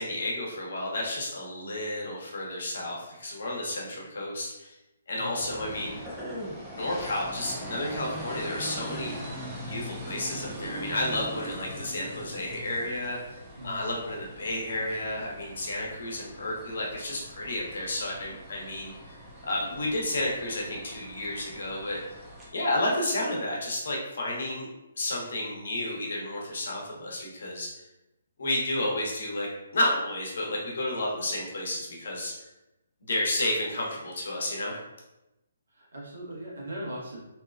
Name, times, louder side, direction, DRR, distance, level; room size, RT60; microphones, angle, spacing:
voice 1, 0.0-4.7 5.1-6.0 6.7-9.2 9.6-19.2 19.4-22.0 22.5-24.7 25.0-27.7 28.4-29.5 29.7-32.3 33.0-34.8, left 1 dB, 70° left, -2 dB, 0.8 m, -31 dB
voice 2, 5.1-5.6 13.6-14.0 35.7-37.3, right 1 dB, 90° right, -3 dB, 0.9 m, -40 dB
sound 1, 5.4-22.5, equal, 5° right, 0.5 m, -41 dB
2.7 x 2.2 x 2.3 m, 0.94 s
hypercardioid pair, 155°, 0 cm